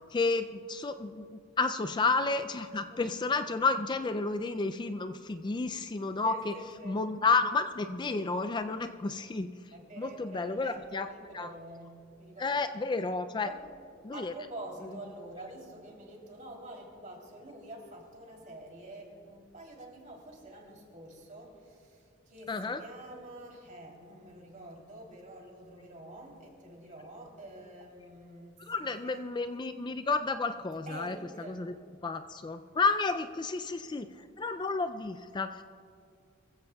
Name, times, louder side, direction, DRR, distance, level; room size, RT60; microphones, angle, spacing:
voice 1, 0.1-6.5 6.8-9.5 10.0-11.1 11.3-11.5 12.4-13.5 14.0-14.3 22.5-22.8 28.7-31.2 31.5-31.7 32.0-35.6, left 3 dB, 20° left, 9 dB, 0.3 m, -31 dB
voice 2, 2.7-3.2 6.2-7.0 9.7-12.5 13.4-13.7 14.1-29.4 30.9-31.6, right 1 dB, 40° right, 0 dB, 3.2 m, -47 dB
23.5 x 15.5 x 2.3 m, 2.3 s
head